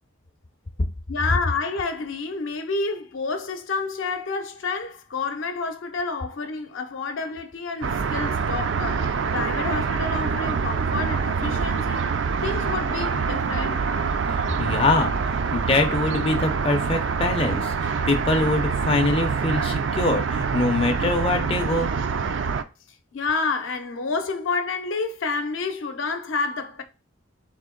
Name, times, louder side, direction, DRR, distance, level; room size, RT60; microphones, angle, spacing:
voice 1, 1.1-12.0 12.4-13.9 23.1-26.8, left 4 dB, 75° left, 0.6 m, -29 dB
sound 1, 7.8-22.6, right 5 dB, 65° right, 0.4 m, -25 dB
voice 2, 14.6-21.9, left 2 dB, 30° left, 0.4 m, -24 dB
3.6 x 2.8 x 3.7 m
head